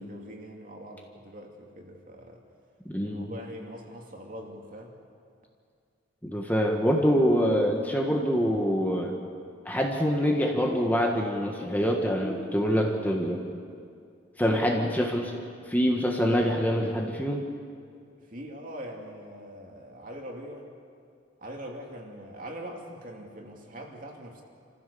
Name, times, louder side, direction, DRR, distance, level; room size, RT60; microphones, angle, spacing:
voice 1, 0.0-2.4 3.0-5.0 14.5-14.7 18.2-20.7 21.4-24.4, equal, 45° right, 0 dB, 2.7 m, -42 dB
voice 2, 2.8-3.3 6.2-9.1 9.6-13.4 14.4-15.3 15.7-17.5, equal, 10° left, 0 dB, 1.5 m, -25 dB
28.0 x 15.0 x 7.0 m, 2.3 s
head